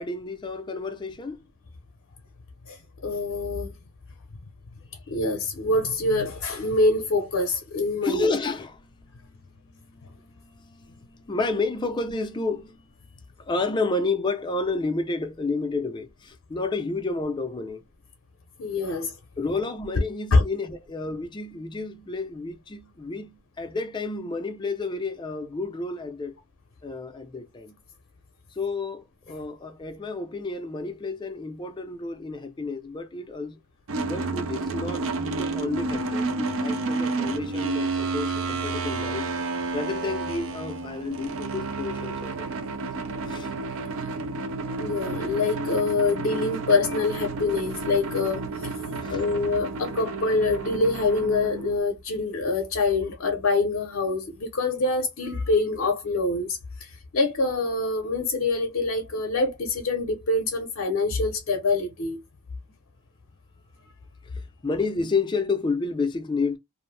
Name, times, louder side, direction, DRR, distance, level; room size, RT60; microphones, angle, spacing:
voice 1, 0.0-1.4 8.0-8.9 9.7-12.8 13.4-17.8 19.4-26.4 26.8-27.8 28.5-33.6 34.0-39.3 39.7-42.8 43.3-43.5 49.0-49.2 64.2-66.6, left 3 dB, 20° left, 0.4 m, -30 dB
voice 2, 2.7-3.7 5.1-8.3 18.6-19.1 20.3-20.4 44.8-48.7 49.1-62.2, left 3 dB, 75° left, 0.6 m, -25 dB
sound 1, 33.9-51.8, right 3 dB, 70° right, 0.5 m, -31 dB
2.5 x 2.0 x 3.1 m
head